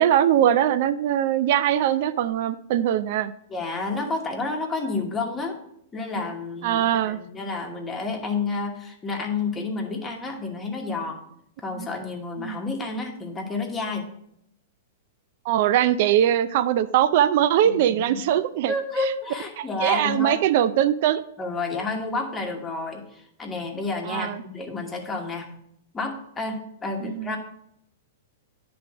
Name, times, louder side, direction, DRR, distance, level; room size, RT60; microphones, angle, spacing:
voice 1, 0.0-3.3 6.6-7.2 11.8-11.9 12.4-12.6 15.5-18.7 19.6-21.2 24.1-24.4 27.0-27.3, right 11 dB, 55° right, 13 dB, 0.4 m, -21 dB
voice 2, 3.5-5.6 5.9-11.2 11.6-14.1 17.6-18.2 18.7-20.4 21.4-25.5 25.9-27.4, left 3 dB, 15° left, 1 dB, 1.2 m, -30 dB
10.0 x 3.4 x 4.8 m, 0.73 s
hypercardioid pair, 145°, 0 cm